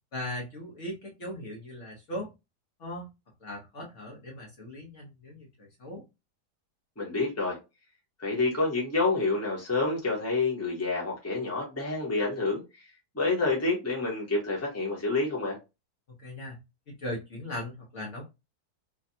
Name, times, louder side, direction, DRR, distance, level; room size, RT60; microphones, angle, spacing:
voice 1, 0.1-2.3 2.8-3.1 3.4-6.0 16.1-16.6 16.9-18.2, left 1 dB, 55° left, 1.1 m, -39 dB
voice 2, 7.0-7.6 8.2-12.6 13.1-15.6, left 3 dB, 10° left, 0.9 m, -28 dB
3.3 x 2.3 x 2.6 m
omnidirectional pair, 1.7 m